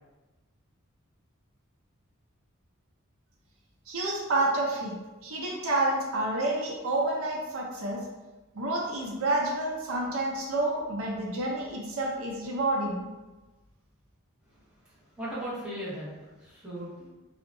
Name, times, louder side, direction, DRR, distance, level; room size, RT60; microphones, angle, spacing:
voice 1, 3.9-5.0 5.2-8.0 8.5-13.1, right 2 dB, 75° right, -2 dB, 0.5 m, -29 dB
voice 2, 14.4-17.1, right 1 dB, 5° right, -10 dB, 0.8 m, -39 dB
2.6 x 2.0 x 2.6 m, 1.1 s
head